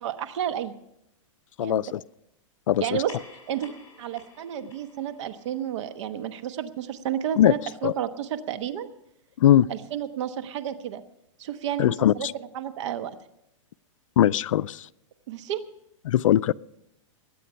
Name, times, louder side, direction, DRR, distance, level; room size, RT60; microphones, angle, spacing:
voice 1, 0.0-0.7 1.6-1.8 2.8-3.2 3.5-3.7 4.0-8.9 9.7-11.0 11.4-13.1 15.3-15.6, right 10 dB, 65° right, 1.2 m, -31 dB
voice 2, 1.6-2.0 2.7-3.0 7.4-7.5 7.8-7.9 9.4-9.7 11.8-12.3 14.2-14.8 16.1-16.5, left 12 dB, 80° left, 0.4 m, -20 dB
sound 1, 2.8-7.7, left 4 dB, 15° left, 5.0 m, -52 dB
21.0 x 8.4 x 5.6 m
hypercardioid pair, 130°, 17 cm